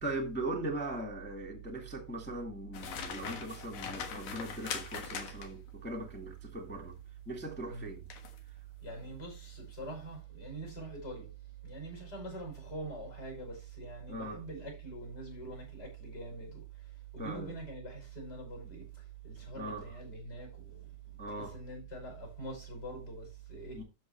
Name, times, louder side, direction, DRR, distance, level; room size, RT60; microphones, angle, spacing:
voice 1, 0.0-7.0 7.2-8.1 14.1-14.4 17.2-17.5 19.6-19.8 21.2-21.5 23.7-23.8, right 1 dB, 5° left, 1.0 m, -39 dB
sound 1, 2.7-5.7 8.1-8.4 8.9-9.1, left 7 dB, 70° left, 2.7 m, -41 dB
voice 2, 8.8-11.3 11.6-23.8, right 2 dB, 30° left, 5.9 m, -44 dB
12.5 x 6.4 x 3.1 m
omnidirectional pair, 3.7 m